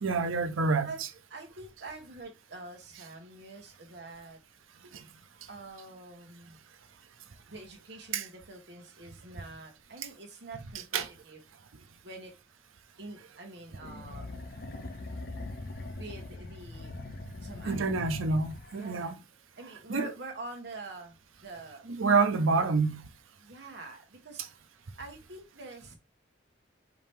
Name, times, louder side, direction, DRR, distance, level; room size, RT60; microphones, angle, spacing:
voice 1, 0.0-0.9 4.9-5.0 8.1-8.3 10.9-11.1 17.6-19.1 19.9-20.1 22.0-23.0, right 4 dB, 90° right, 0.7 m, -27 dB
voice 2, 1.3-4.4 5.5-6.6 7.5-11.4 12.0-12.3 13.0-14.3 16.0-17.0 17.4-18.4 18.7-19.2 19.6-21.2 21.4-21.8 23.4-24.4 25.0-26.0, right 2 dB, 55° right, 1.4 m, -45 dB
sound 1, 13.8-19.0, left 2 dB, 50° left, 0.5 m, -41 dB
5.0 x 2.8 x 3.5 m
head